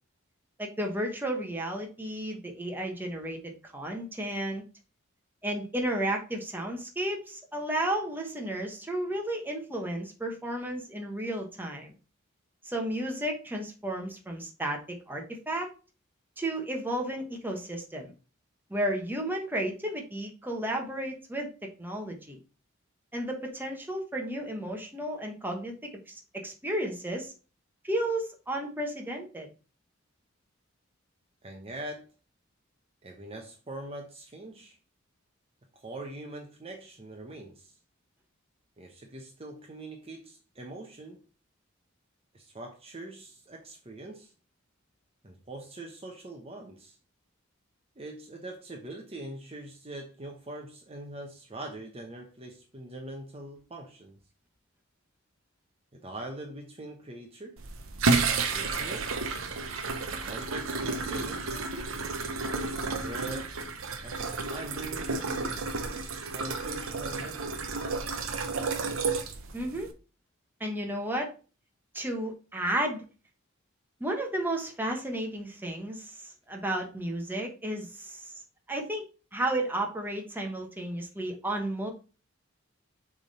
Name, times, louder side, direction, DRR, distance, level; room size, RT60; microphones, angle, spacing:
voice 1, 0.6-4.6 5.4-11.9 12.6-15.7 16.4-18.1 18.7-22.4 23.1-27.3 27.8-29.5 69.5-69.9 70.6-71.3 71.9-73.0 74.0-78.3 78.7-79.1 79.3-81.9, right 1 dB, 10° right, 1.2 m, -33 dB
voice 2, 31.4-32.1 33.0-34.8 35.7-37.8 38.8-41.2 42.3-44.3 45.2-47.0 48.0-54.2 55.9-57.6 58.5-59.1 60.0-61.6 62.9-63.6 64.0-67.9, right 2 dB, 30° right, 1.0 m, -43 dB
sound 1, 57.6-69.9, right 4 dB, 85° right, 0.9 m, -31 dB
6.9 x 3.6 x 4.2 m
head